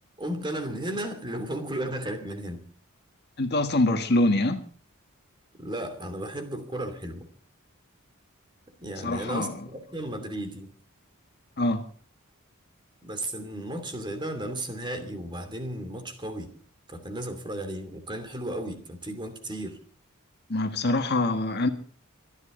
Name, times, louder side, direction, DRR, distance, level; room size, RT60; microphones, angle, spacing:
voice 1, 0.2-2.6 5.6-7.3 8.8-10.7 13.0-16.5 16.9-19.8, right 1 dB, 20° right, 2.8 m, -34 dB
voice 2, 3.4-4.6 8.9-9.7 11.6-11.8 20.5-21.7, left 2 dB, 50° left, 1.7 m, -24 dB
26.0 x 11.0 x 3.9 m
head